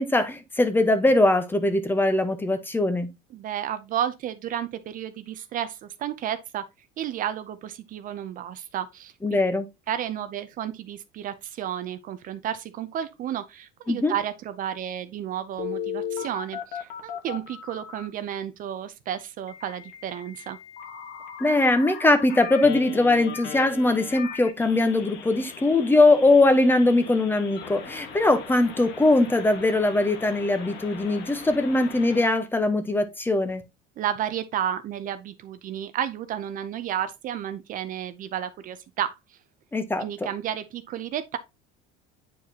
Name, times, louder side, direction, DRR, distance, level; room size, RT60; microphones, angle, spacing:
voice 1, 0.0-3.1 9.2-9.7 13.9-14.1 21.4-33.6 39.7-40.1, left 2 dB, 10° left, 0.9 m, -21 dB
voice 2, 3.3-6.6 7.0-9.4 9.9-20.6 34.0-39.1 40.0-41.4, right 10 dB, 45° right, 0.6 m, -32 dB
Telephone, 15.6-18.1 19.5-32.3, left 8 dB, 60° left, 1.5 m, -38 dB
9.0 x 4.8 x 2.8 m
cardioid pair, 130°, 20 cm